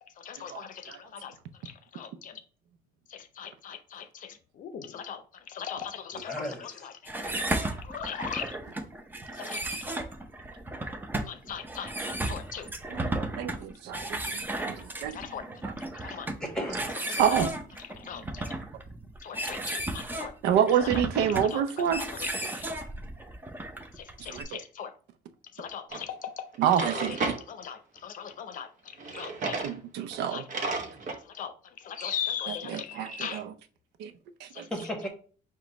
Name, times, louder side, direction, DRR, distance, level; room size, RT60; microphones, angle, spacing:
voice 1, 0.0-2.4 3.1-7.5 7.8-8.6 9.3-10.0 11.3-12.7 14.2-14.4 15.1-15.5 15.9-16.3 17.2-17.5 17.8-18.5 19.2-20.3 20.8-22.7 24.0-24.9 25.5-29.6 30.3-30.5 31.1-33.4 34.5-34.7, left 8 dB, 50° left, 0.6 m, -40 dB
voice 2, 6.1-6.8 16.4-17.2 27.1-27.2 29.1-29.2 32.0-32.1 33.0-33.4 34.7-35.1, equal, 5° left, 1.3 m, -36 dB
sound 1, 7.1-24.4, right 1 dB, 10° right, 0.6 m, -35 dB
voice 3, 13.1-13.5 14.7-15.1 17.2-17.5 20.4-22.0 24.3-24.4 26.6-27.1 29.6-30.4 32.7-33.4 34.0-34.1 34.6-34.7, right 9 dB, 85° right, 0.5 m, -26 dB
Drawer open or close, 25.9-26.0 26.5-27.4 29.0-29.8 30.1-30.2 30.5-31.2, right 3 dB, 50° right, 0.8 m, -33 dB
5.0 x 2.2 x 4.0 m
cardioid pair, 110°, 17 cm